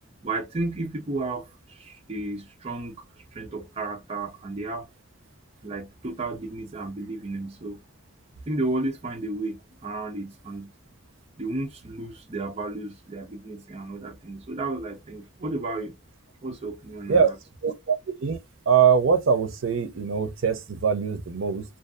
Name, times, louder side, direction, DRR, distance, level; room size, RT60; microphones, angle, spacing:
voice 1, 0.2-3.0 3.3-4.9 5.6-7.8 8.5-10.7 11.4-16.0 16.4-17.4, right 2 dB, 30° right, 0.5 m, -33 dB
voice 2, 17.6-18.0 18.2-18.4 18.7-21.6, right 6 dB, 80° right, 0.5 m, -22 dB
2.6 x 2.3 x 2.4 m
head